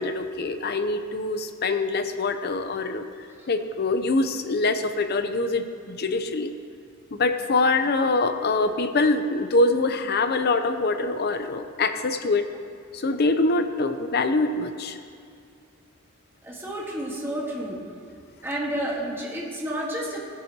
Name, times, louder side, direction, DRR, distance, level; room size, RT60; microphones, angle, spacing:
voice 1, 0.0-3.0 3.5-6.5 7.1-12.4 12.9-15.0, left 3 dB, 55° left, 8 dB, 0.7 m, -24 dB
voice 2, 16.4-17.8 18.4-20.2, right 1 dB, 10° right, -4 dB, 1.6 m, -30 dB
17.0 x 10.5 x 2.9 m, 2.5 s
head